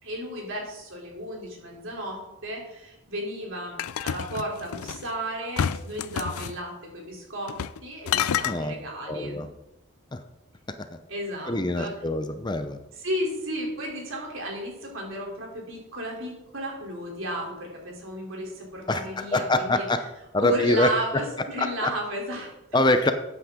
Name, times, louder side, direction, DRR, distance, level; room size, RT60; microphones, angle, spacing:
voice 1, 0.0-7.5 7.8-9.4 11.1-11.9 13.0-19.8 20.4-22.9, equal, 65° right, -1 dB, 3.4 m, -33 dB
sound 1, 3.8-5.1 5.6-6.6 7.5-7.8 8.1-8.6, left 8 dB, 90° left, 0.4 m, -28 dB
voice 2, 8.4-8.7 9.1-9.5 10.1-10.2 11.5-12.8 18.9-20.0 20.3-21.2 21.6-21.9 22.7-23.1, left 2 dB, 20° left, 8 dB, 0.5 m, -24 dB
13.0 x 8.7 x 3.7 m, 0.95 s
head